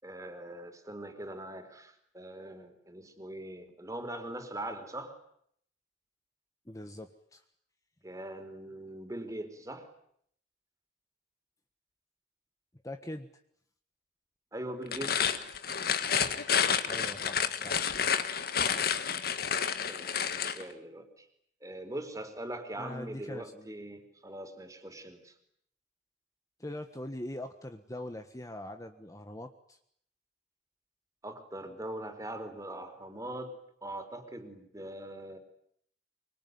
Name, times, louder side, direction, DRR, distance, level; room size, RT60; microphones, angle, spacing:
voice 1, 0.0-5.2 8.0-9.9 14.5-15.4 19.9-21.3 21.6-25.3 31.2-33.6 33.8-35.4, right 1 dB, 20° right, 7 dB, 4.2 m, -42 dB
voice 2, 6.6-7.4 12.8-13.3 16.9-17.9 22.8-23.7 26.6-29.8, left 1 dB, 20° left, 7 dB, 1.5 m, -42 dB
sound 1, 14.8-20.6, left 7 dB, 60° left, 1.9 m, -30 dB
25.0 x 24.5 x 9.5 m, 0.69 s
head